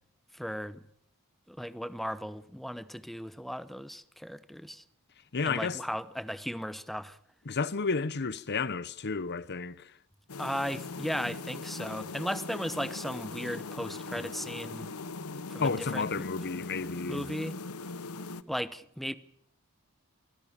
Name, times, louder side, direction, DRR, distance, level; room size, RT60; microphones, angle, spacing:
voice 1, 0.3-0.8 1.5-4.8 5.4-7.2 10.4-14.9 15.5-16.3 17.1-17.6 18.5-19.1, equal, ahead, 1.0 m, -36 dB
voice 2, 5.3-5.8 7.5-9.9 15.6-17.2, left 4 dB, 50° left, 0.9 m, -31 dB
sound 1, 10.3-18.4, left 3 dB, 75° left, 1.1 m, -40 dB
24.5 x 19.0 x 8.8 m
head